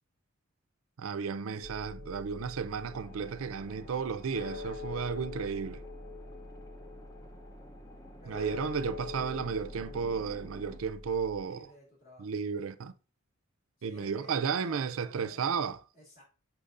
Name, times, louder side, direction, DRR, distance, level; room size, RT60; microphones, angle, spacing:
voice 1, 1.0-5.8 8.3-11.7 12.2-12.9 13.8-15.8, right 6 dB, 70° right, 0.5 m, -33 dB
sound 1, 1.6-11.4, left 3 dB, 60° left, 1.1 m, -44 dB
sound 2, 2.9-10.8, left 1 dB, 15° left, 0.6 m, -53 dB
voice 2, 11.4-12.3 13.8-15.7 15.9-16.2, equal, 45° left, 3.0 m, -54 dB
6.6 x 6.0 x 2.5 m
head